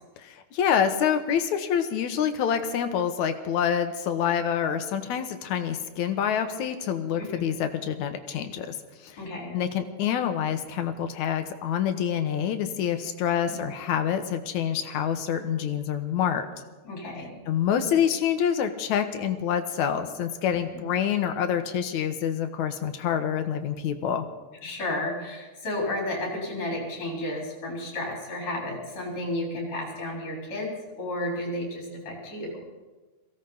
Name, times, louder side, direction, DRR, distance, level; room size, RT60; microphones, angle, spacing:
voice 1, 0.2-9.2 9.5-16.5 17.5-24.3, left 8 dB, 75° left, 8 dB, 2.4 m, -27 dB
voice 2, 9.2-9.5 16.9-17.4 20.5-20.8 24.6-30.7 31.0-32.7, left 1 dB, 60° left, -1 dB, 5.2 m, -32 dB
22.5 x 16.5 x 4.0 m, 1.2 s
omnidirectional pair, 3.4 m